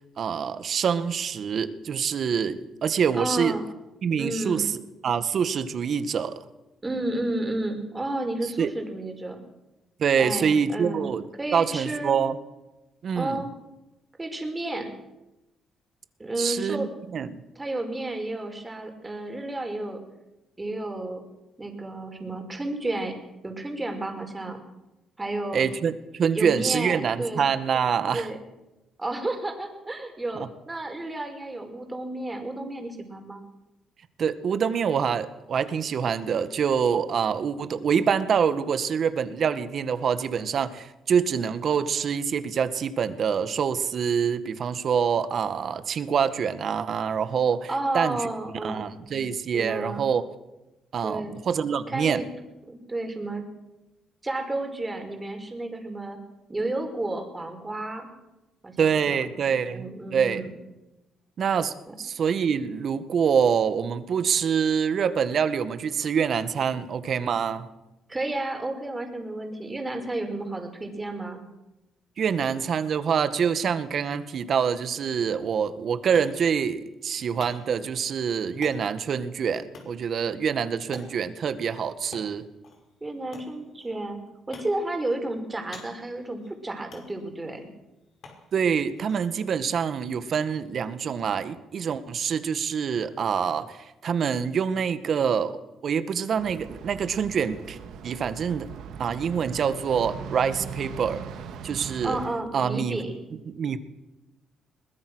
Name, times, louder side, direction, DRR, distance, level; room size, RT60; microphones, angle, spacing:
voice 1, 0.2-3.6 4.0-4.7 5.0-6.4 8.6-8.7 10.0-11.2 11.5-12.4 13.0-13.4 16.4-17.4 25.5-28.3 30.4-30.5 34.2-48.2 48.6-50.3 50.9-52.2 58.8-60.5 61.4-67.7 72.2-82.4 88.5-97.8 98.0-98.7 99.0-101.2 101.6-102.2 102.5-103.2 103.5-103.8, right 7 dB, 55° right, 11 dB, 1.8 m, -26 dB
voice 2, 3.1-3.7 4.2-4.7 6.8-9.4 10.2-11.1 11.4-12.2 13.2-13.5 14.2-14.9 16.2-16.9 17.6-20.0 20.6-21.2 21.6-23.2 23.4-24.6 25.2-25.6 26.3-27.5 28.1-28.4 29.0-33.4 47.7-48.9 49.5-50.1 51.0-51.4 51.9-52.2 52.7-53.5 54.2-56.2 56.5-58.1 58.6-60.5 61.9-62.0 68.1-71.4 83.0-84.2 84.5-87.6 102.0-103.1, right 2 dB, 20° right, 5 dB, 5.3 m, -32 dB
sound 1, 75.5-91.2, left 4 dB, 60° left, 5.8 m, -51 dB
sound 2, 96.4-102.3, right 6 dB, 80° right, 2.4 m, -39 dB
22.5 x 20.5 x 6.4 m, 0.99 s
cardioid pair, 90°, 0 cm